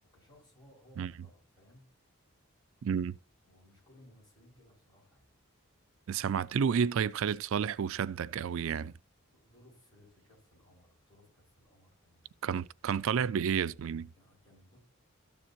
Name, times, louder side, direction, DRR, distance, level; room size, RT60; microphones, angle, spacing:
voice 1, 0.1-1.9 3.4-5.3 9.3-12.6 14.1-14.8, left 1 dB, 20° left, 5.5 m, -61 dB
voice 2, 2.8-3.2 6.1-8.9 12.4-14.1, right 7 dB, 65° right, 0.3 m, -31 dB
13.5 x 7.1 x 2.9 m
head